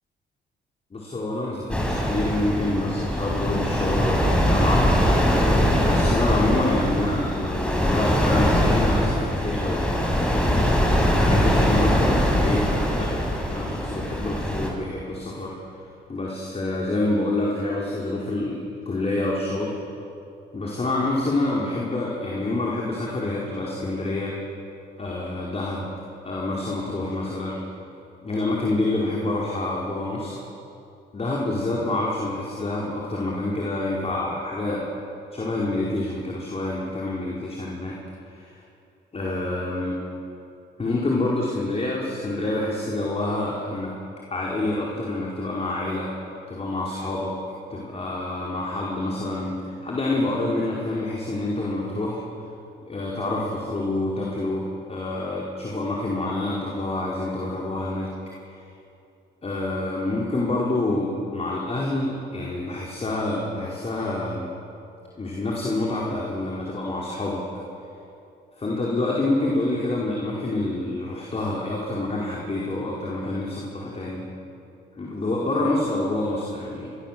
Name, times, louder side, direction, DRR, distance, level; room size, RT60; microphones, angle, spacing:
voice 1, 0.9-13.1 13.5-15.6 16.1-19.8 20.5-24.4 25.0-25.9 26.2-27.6 28.2-30.4 31.1-34.9 35.3-38.0 38.3-38.6 39.1-40.0 40.8-43.9 44.3-46.1 46.5-47.3 47.7-52.2 52.8-58.1 59.4-64.5 65.2-67.4 68.6-74.3 75.0-76.9, left 2 dB, 30° left, -3 dB, 5.1 m, -27 dB
sound 1, 1.7-14.7, equal, 5° left, 6.3 m, -22 dB
29.0 x 21.5 x 7.8 m, 2.6 s
cardioid pair, 90°, 20 cm